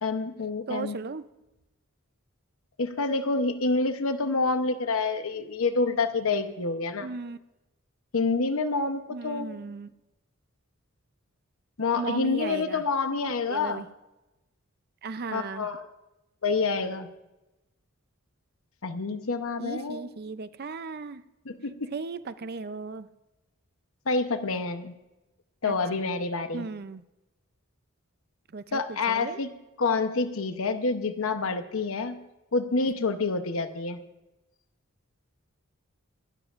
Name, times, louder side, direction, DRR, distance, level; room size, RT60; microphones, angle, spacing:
voice 1, 0.0-1.0 2.8-7.1 8.1-9.6 11.8-13.8 15.3-15.9 16.4-17.1 18.8-20.1 21.4-21.9 24.1-24.9 25.6-26.7 28.7-29.5 29.8-32.2 32.5-34.0, left 3 dB, 75° left, 8 dB, 0.9 m, -28 dB
voice 2, 0.7-1.2 7.0-7.4 9.1-9.9 11.9-12.8 13.5-13.9 15.0-15.7 19.6-21.2 21.9-23.1 25.6-26.0 26.5-27.0 28.5-29.4, right 4 dB, 45° right, 13 dB, 0.5 m, -36 dB
25.5 x 12.5 x 2.5 m, 1.0 s
head